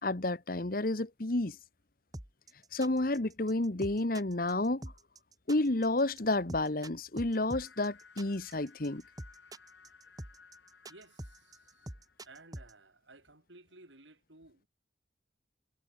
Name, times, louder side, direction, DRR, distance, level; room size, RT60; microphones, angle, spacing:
voice 1, 0.0-1.6 2.7-4.9 5.5-9.0, left 2 dB, 50° left, 1.3 m, -30 dB
sound 1, 2.1-12.7, right 1 dB, 20° right, 2.0 m, -45 dB
sound 2, 7.5-12.6, left 5 dB, 80° left, 7.7 m, -59 dB
voice 2, 10.9-11.9 12.2-14.7, right 2 dB, 80° right, 6.2 m, -57 dB
head